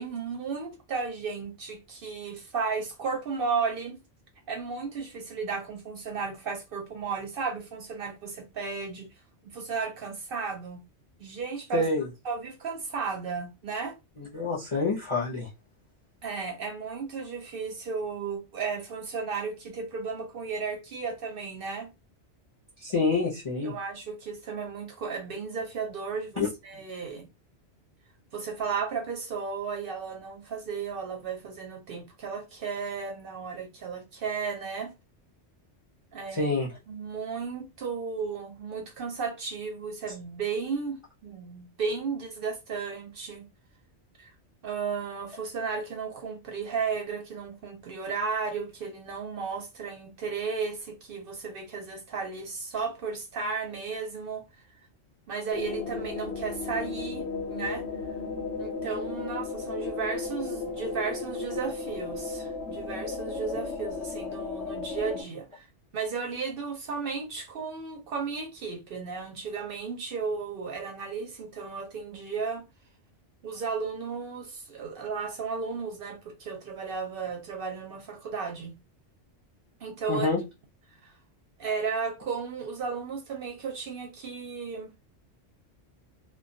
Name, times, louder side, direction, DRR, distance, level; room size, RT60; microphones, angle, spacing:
voice 1, 0.0-4.0 4.5-9.1 9.4-10.8 11.2-11.9 12.2-13.9 16.2-21.9 23.6-27.3 28.3-34.9 36.1-36.5 36.9-43.5 44.2-44.3 44.6-54.5 55.3-57.8 58.6-65.6 65.9-72.7 73.4-78.7 79.8-80.3 81.0-81.1 81.6-84.9, right 5 dB, 60° right, 0.7 m, -34 dB
voice 2, 11.7-12.1 14.2-15.5 22.8-23.7 26.4-26.5 36.3-36.7 80.1-80.4, left 3 dB, 40° left, 0.4 m, -27 dB
sound 1, 55.5-65.2, left 4 dB, 90° left, 0.9 m, -35 dB
2.2 x 2.1 x 2.6 m
omnidirectional pair, 1.2 m